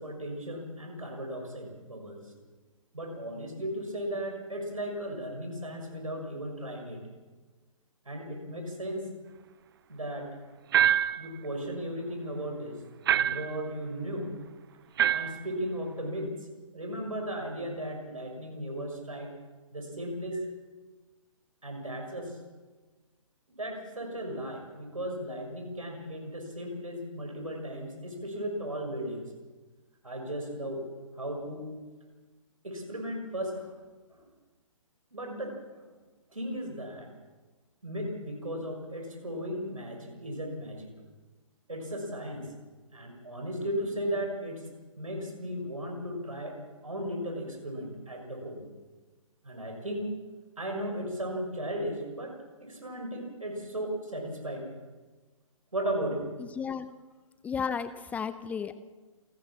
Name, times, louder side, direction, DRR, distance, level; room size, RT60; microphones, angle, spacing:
voice 1, 0.0-2.2 2.9-7.0 8.0-9.1 9.9-10.3 11.2-12.8 13.1-14.4 15.1-16.3 16.7-19.3 19.7-20.4 21.6-22.4 23.6-29.3 30.0-30.8 31.2-31.8 32.6-33.7 34.1-34.3 35.1-35.8 36.3-37.1 37.8-40.9 41.7-42.5 42.9-44.7 45.0-48.6 49.4-50.1 50.6-52.3 52.6-54.7 55.7-56.3, equal, 80° right, 3 dB, 6.4 m, -36 dB
sound 1, 10.7-11.3 13.1-13.6 15.0-15.4, right 10 dB, 45° right, 0.6 m, -25 dB
voice 2, 56.4-56.9 57.4-58.8, left 6 dB, 10° left, 13 dB, 0.6 m, -33 dB
28.0 x 13.0 x 7.3 m, 1.3 s
figure-of-eight pair, 130°, 17 cm